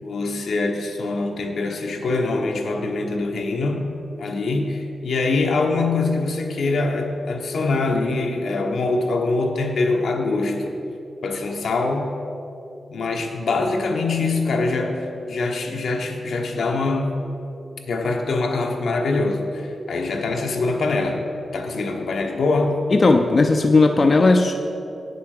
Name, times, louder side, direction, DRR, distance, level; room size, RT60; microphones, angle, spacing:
voice 1, 0.0-3.9 4.2-10.8 11.2-12.1 12.9-17.2 17.9-21.2 21.5-22.8, left 3 dB, 80° left, 2 dB, 1.2 m, -23 dB
voice 2, 22.9-24.6, left 3 dB, 35° left, 4 dB, 0.5 m, -16 dB
8.9 x 6.9 x 6.5 m, 2.7 s
wide cardioid pair, 145°, 0 cm